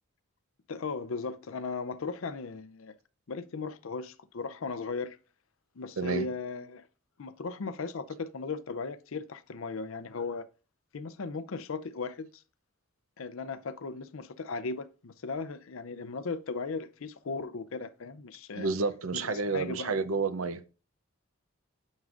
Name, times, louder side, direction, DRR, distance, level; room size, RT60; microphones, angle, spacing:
voice 1, 0.7-2.9 3.3-5.2 5.8-6.9 7.2-10.4 10.9-12.4 13.2-18.7 19.1-20.0, left 4 dB, 75° left, 0.5 m, -37 dB
voice 2, 6.0-6.3 18.5-20.6, right 4 dB, 85° right, 0.6 m, -30 dB
9.5 x 6.3 x 2.5 m
head